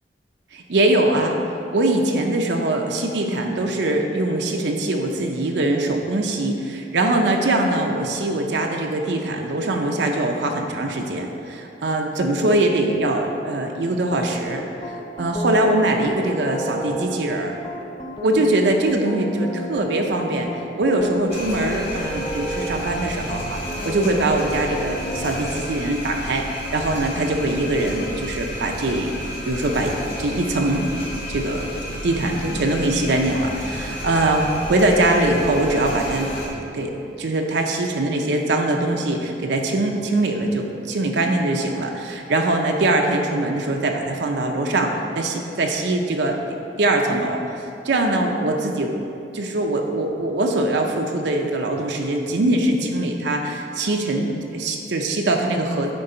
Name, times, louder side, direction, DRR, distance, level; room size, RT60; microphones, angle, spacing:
voice 1, 0.5-1.4 1.7-14.6 15.2-17.5 18.2-20.5 20.8-29.1 29.4-29.9 30.2-30.9 31.3-31.7 32.0-36.3 36.7-46.4 46.8-49.0 49.3-55.9, right 2 dB, 70° right, 2 dB, 0.6 m, -22 dB
sound 1, 14.1-25.4, equal, 25° left, 0.4 m, -33 dB
sound 2, 21.3-36.5, equal, 85° left, 1.6 m, -32 dB
9.8 x 3.9 x 3.8 m, 2.7 s
head